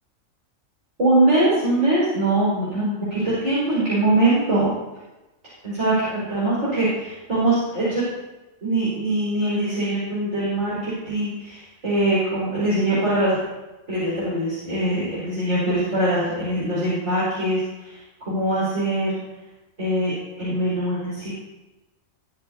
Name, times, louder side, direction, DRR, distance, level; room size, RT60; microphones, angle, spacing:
voice 1, 1.0-4.7 5.6-8.0 8.6-13.4 13.9-19.2 19.8-21.3, right 1 dB, 65° right, -10 dB, 5.0 m, -22 dB
21.0 x 9.0 x 2.8 m, 1.1 s
omnidirectional pair, 1.4 m